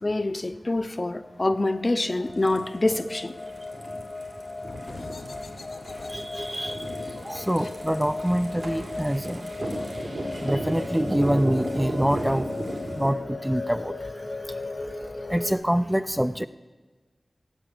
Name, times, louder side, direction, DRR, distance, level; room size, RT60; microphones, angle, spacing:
voice 1, 0.0-3.4, left 2 dB, 35° left, 0.6 m, -26 dB
sound 1, 1.0-15.5, left 3 dB, 55° left, 1.1 m, -37 dB
sound 2, 2.2-13.1, right 1 dB, 75° right, 3.4 m, -35 dB
sound 3, 4.6-10.0, left 3 dB, 75° left, 0.6 m, -46 dB
voice 2, 6.1-6.9 7.2-9.5 10.4-12.5 13.0-13.9 15.3-16.5, equal, 5° right, 0.4 m, -25 dB
15.5 x 8.1 x 7.7 m
wide cardioid pair, 80°, 0 cm